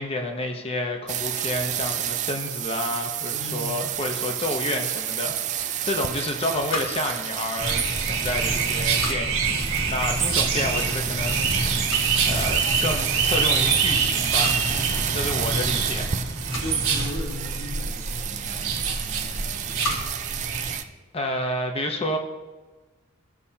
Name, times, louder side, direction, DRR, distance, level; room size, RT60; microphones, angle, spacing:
voice 1, 0.0-9.4 9.9-11.9 12.2-16.2 21.1-22.2, left 1 dB, 25° left, 3 dB, 1.0 m, -30 dB
sound 1, 1.1-9.1 9.4-20.8, right 10 dB, 35° right, 0.4 m, -30 dB
voice 2, 3.3-3.8 16.6-20.1, left 1 dB, 85° left, -4 dB, 3.4 m, -38 dB
sound 2, 6.7-21.4, left 1 dB, 65° left, 1.7 m, -40 dB
sound 3, 7.6-20.8, right 4 dB, 65° right, 1.6 m, -25 dB
16.0 x 6.8 x 2.9 m, 1.3 s
head